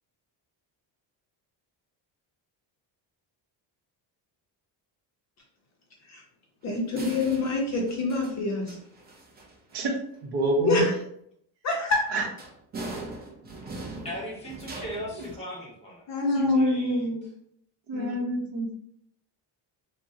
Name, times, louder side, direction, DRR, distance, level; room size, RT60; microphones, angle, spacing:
voice 1, 6.6-8.8 10.7-10.9 11.6-12.0 16.1-16.5 17.9-18.1, left 3 dB, 40° left, -1 dB, 0.5 m, -26 dB
sound 1, 6.7-6.8 6.9-9.8 12.4-15.3, right 2 dB, 25° right, 0.4 m, -41 dB
voice 2, 9.7-10.8 12.1-12.2 16.2-17.2 17.9-18.8, equal, 60° right, 2 dB, 0.7 m, -26 dB
voice 3, 14.0-17.1, equal, 15° left, -4 dB, 0.9 m, -39 dB
3.6 x 2.0 x 2.6 m, 0.70 s
cardioid pair, 170°, 45 cm